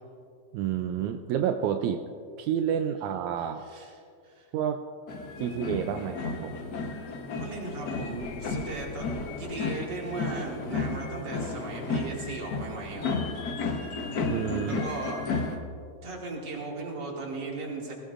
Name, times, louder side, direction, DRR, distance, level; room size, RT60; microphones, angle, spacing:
voice 1, 0.5-2.1 2.4-3.6 4.5-4.8 5.4-6.6 14.3-14.8, right 9 dB, 85° right, 6 dB, 1.9 m, -29 dB
voice 2, 3.4-3.9 4.2-4.5 7.4-9.1 9.4-13.2 13.8-13.9 14.6-15.3 16.0-17.9, right 3 dB, 40° right, -2 dB, 2.7 m, -37 dB
sound 1, 5.1-15.6, left 4 dB, 65° left, 1.0 m, -33 dB
20.5 x 17.5 x 2.5 m, 2.4 s
omnidirectional pair, 3.3 m